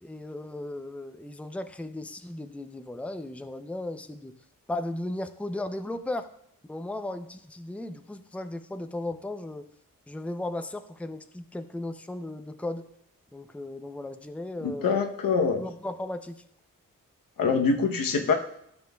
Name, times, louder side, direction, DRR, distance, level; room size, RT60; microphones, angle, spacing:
voice 1, 0.0-4.4 4.7-6.3 6.7-9.7 10.1-12.8 13.3-15.0 15.5-16.4, left 1 dB, 5° left, 8 dB, 0.6 m, -36 dB
voice 2, 14.6-15.6 17.4-18.3, left 5 dB, 80° left, 3 dB, 1.0 m, -24 dB
12.5 x 6.2 x 2.3 m, 0.74 s
cardioid pair, 60°, 34 cm